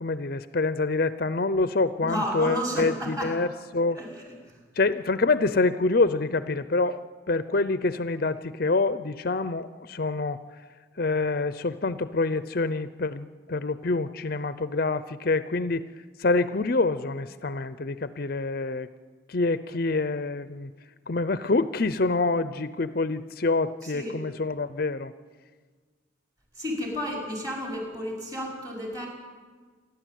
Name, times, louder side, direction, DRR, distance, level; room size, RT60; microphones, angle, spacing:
voice 1, 0.0-3.5 3.7-4.0 4.7-7.0 7.3-10.6 11.0-18.9 19.3-20.7 21.1-25.1, left 3 dB, 50° left, 13 dB, 0.6 m, -26 dB
voice 2, 2.0-3.3 4.0-4.6 23.8-24.2 26.6-29.1, equal, 20° right, -1 dB, 5.2 m, -32 dB
28.0 x 12.0 x 9.2 m, 1.5 s
head